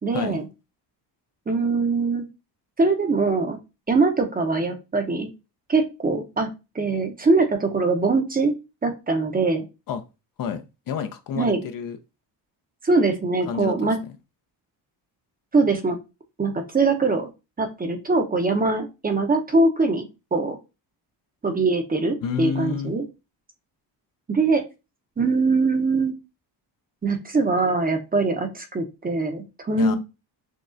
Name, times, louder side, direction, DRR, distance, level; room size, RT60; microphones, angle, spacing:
voice 1, 0.0-0.5 1.5-2.3 2.8-3.6 3.9-5.3 5.7-9.6 11.4-11.6 12.8-14.0 15.5-16.0 16.4-17.3 17.6-20.1 20.3-20.6 21.4-23.0 24.3-24.7 25.2-26.1 27.0-30.0, right 3 dB, 20° right, 0.6 m, -22 dB
voice 2, 10.4-12.0 13.5-14.0 22.2-22.9 29.8-30.0, left 7 dB, 50° left, 0.5 m, -29 dB
6.3 x 2.3 x 2.5 m
cardioid pair, 115°, 45 cm